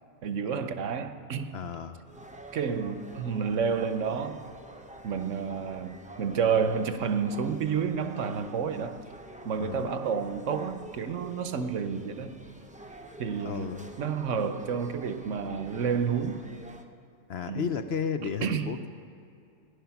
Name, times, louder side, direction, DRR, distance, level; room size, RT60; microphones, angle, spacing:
voice 1, 0.2-1.5 2.5-4.4 5.0-9.0 9.5-12.4 13.2-16.4 17.5-17.7 18.4-18.8, right 6 dB, 65° right, 9 dB, 1.1 m, -30 dB
voice 2, 1.5-2.0 9.6-9.9 13.4-13.9 17.3-18.9, left 7 dB, 60° left, 9 dB, 0.7 m, -33 dB
sound 1, 2.1-16.8, right 1 dB, 10° right, 0.6 m, -47 dB
18.0 x 10.5 x 5.8 m, 2.6 s
omnidirectional pair, 1.4 m